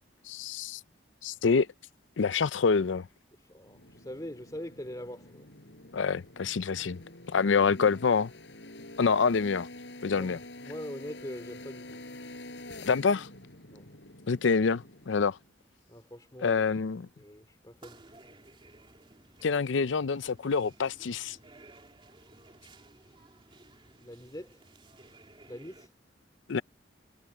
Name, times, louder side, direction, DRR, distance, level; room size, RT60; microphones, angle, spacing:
voice 1, 0.3-0.8 1.2-1.7 2.2-3.1 5.9-7.0 7.3-8.3 9.0-9.7 10.0-10.4 12.9-13.3 14.3-15.4 16.4-17.1 19.4-21.4 26.5-26.6, left 5 dB, 90° left, 0.5 m, -26 dB
voice 2, 3.4-5.5 10.1-12.0 13.7-13.9 15.9-16.6 17.2-18.0 24.0-24.6 25.5-25.9, left 1 dB, 20° left, 2.7 m, -43 dB
sound 1, 3.6-15.5, left 1 dB, 70° left, 5.8 m, -47 dB
sound 2, 17.8-25.9, right 2 dB, 30° right, 3.1 m, -56 dB
head